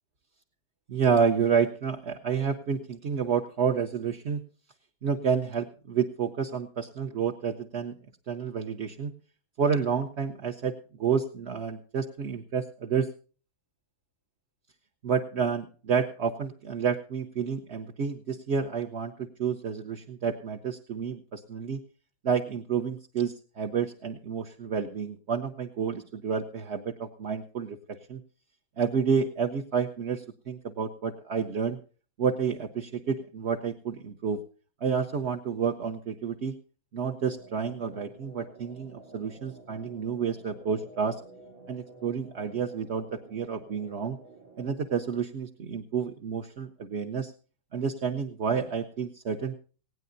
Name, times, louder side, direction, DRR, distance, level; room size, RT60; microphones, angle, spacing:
voice 1, 0.9-4.4 5.0-7.9 8.3-9.1 9.6-10.7 11.0-13.1 15.0-21.8 22.2-28.2 28.8-31.8 32.2-34.4 34.8-36.5 36.9-41.2 41.7-44.2 44.6-47.3 47.7-49.5, right 6 dB, 50° right, 3 dB, 0.8 m, -29 dB
sound 1, 37.2-45.2, right 2 dB, 80° right, 2.7 m, -52 dB
19.0 x 16.5 x 2.6 m, 0.37 s
omnidirectional pair, 2.2 m